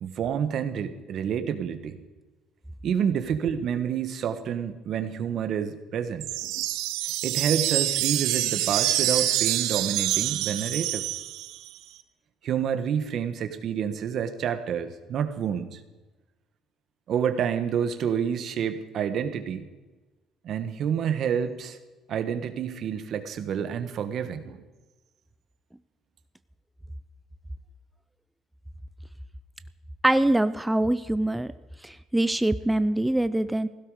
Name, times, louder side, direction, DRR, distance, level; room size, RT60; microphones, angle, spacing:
voice 1, 0.0-2.0 2.8-6.7 7.2-11.0 12.4-15.8 17.1-19.7 20.4-21.8 22.1-24.6, right 8 dB, 45° right, 10 dB, 1.2 m, -28 dB
sound 1, 6.2-11.7, right 14 dB, 85° right, 1.0 m, -26 dB
voice 2, 30.0-31.5 31.8-33.7, right 1 dB, 5° right, 12 dB, 0.4 m, -24 dB
17.0 x 16.5 x 4.9 m, 1.2 s
cardioid pair, 175°, 0 cm